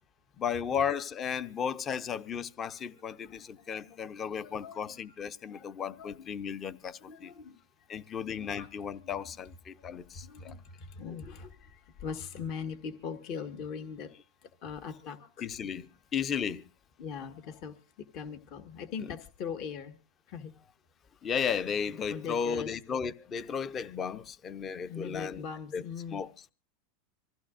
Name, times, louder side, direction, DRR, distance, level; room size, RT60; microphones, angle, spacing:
voice 1, 0.4-7.3 7.9-10.5 15.4-15.9 16.1-16.6 21.2-25.4 25.7-25.8 26.1-26.5, left 7 dB, 25° left, 0.7 m, -34 dB
voice 2, 2.8-5.1 5.4-6.3 7.0-7.6 8.3-8.7 9.0-9.1 9.8-14.1 14.4-15.5 17.0-20.0 20.3-20.5 22.1-22.7 24.8-26.2, left 6 dB, 50° left, 1.5 m, -42 dB
25.5 x 15.0 x 2.5 m
supercardioid pair, 135°, 0 cm